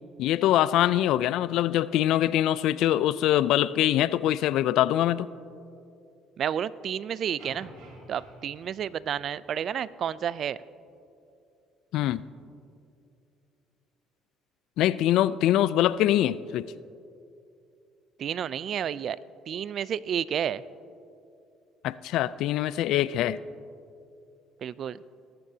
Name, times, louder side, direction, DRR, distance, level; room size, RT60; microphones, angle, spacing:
voice 1, 0.2-5.3 11.9-12.2 14.8-16.7 21.8-23.4, left 13 dB, 75° left, 18 dB, 0.3 m, -23 dB
voice 2, 6.4-7.7 8.1-10.6 18.2-19.2 19.5-20.6 24.6-25.0, right 9 dB, 55° right, 18 dB, 0.4 m, -30 dB
sound 1, 7.4-9.7, right 1 dB, 80° right, 3.6 m, -49 dB
20.0 x 14.0 x 2.8 m, 2.6 s
cardioid pair, 95°, 0 cm